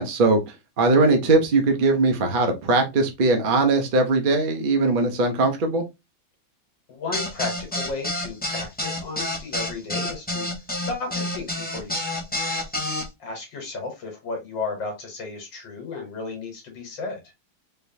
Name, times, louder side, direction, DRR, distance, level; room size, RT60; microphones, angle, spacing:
voice 1, 0.0-5.8, right 3 dB, 60° right, 4 dB, 0.5 m, -20 dB
voice 2, 6.9-10.5 10.9-12.1 13.2-17.2, left 4 dB, 70° left, 3 dB, 1.9 m, -33 dB
sound 1, 7.1-13.0, left 1 dB, 10° left, 0.6 m, -28 dB
4.0 x 3.3 x 2.6 m, 0.22 s
omnidirectional pair, 2.1 m